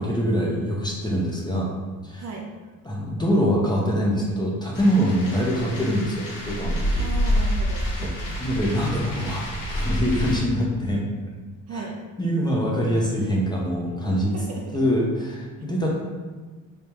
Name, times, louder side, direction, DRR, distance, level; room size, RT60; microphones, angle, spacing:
voice 1, 0.0-1.7 2.0-2.2 2.8-7.0 8.0-8.1 8.4-11.0 11.7-11.8 12.2-14.3 14.7-15.9, equal, 15° left, -3 dB, 0.7 m, -24 dB
voice 2, 2.2-2.5 7.0-8.4 11.7-12.0 14.1-14.8, right 3 dB, 50° right, 0 dB, 0.7 m, -36 dB
sound 1, 4.7-10.4, equal, 70° left, 1.1 m, -27 dB
3.4 x 3.3 x 2.9 m, 1.4 s
cardioid pair, 105°, 34 cm